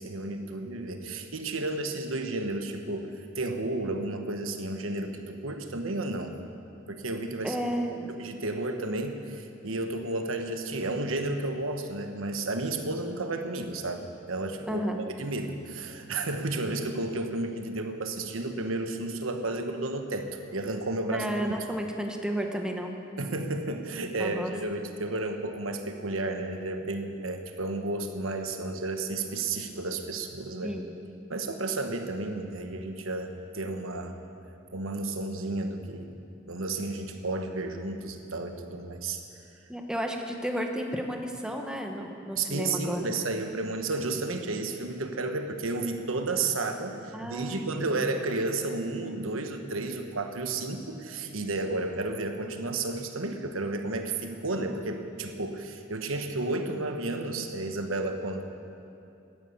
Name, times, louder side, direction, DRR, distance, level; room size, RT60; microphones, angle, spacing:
voice 1, 0.0-3.1 3.4-6.3 6.9-7.6 8.2-21.6 23.2-30.7 31.3-34.2 34.7-36.2 36.5-39.2 42.4-58.4, right 2 dB, 85° right, 5 dB, 1.2 m, -32 dB
voice 2, 7.4-8.1 14.7-15.0 21.1-22.9 24.2-24.5 30.6-30.9 39.7-43.1 47.1-47.9, equal, 5° right, 2 dB, 1.2 m, -32 dB
12.0 x 11.0 x 8.6 m, 2.7 s
head